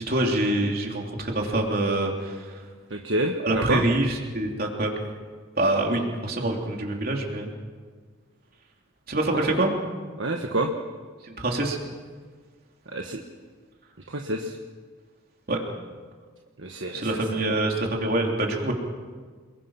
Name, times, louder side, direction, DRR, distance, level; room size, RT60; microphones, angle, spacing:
voice 1, 0.0-2.5 3.4-4.9 5.6-7.5 9.1-9.7 11.3-11.8 15.5-15.6 16.9-18.7, right 1 dB, 45° right, 1 dB, 3.5 m, -25 dB
voice 2, 2.9-3.8 9.3-9.5 10.2-10.7 12.9-13.2 14.1-14.6 16.6-17.4, right 1 dB, 65° right, 2 dB, 1.4 m, -28 dB
28.5 x 21.5 x 5.9 m, 1.5 s
head